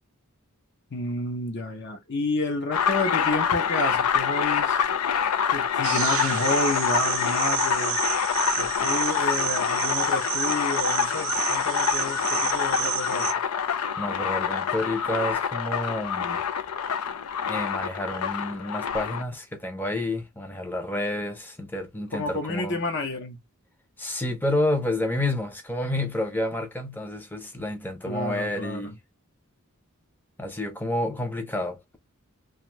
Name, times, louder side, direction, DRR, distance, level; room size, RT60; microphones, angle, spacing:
voice 1, 0.9-4.8 5.5-8.0 8.6-13.3 22.1-23.4 28.1-28.9, left 2 dB, 50° left, 0.7 m, -30 dB
sound 1, 2.7-19.2, left 7 dB, 90° left, 0.4 m, -26 dB
sound 2, 5.8-13.3, right 11 dB, 65° right, 0.5 m, -30 dB
voice 2, 14.0-16.4 17.5-22.8 24.0-29.0 30.4-32.0, left 1 dB, 10° left, 0.6 m, -29 dB
2.6 x 2.3 x 3.0 m
head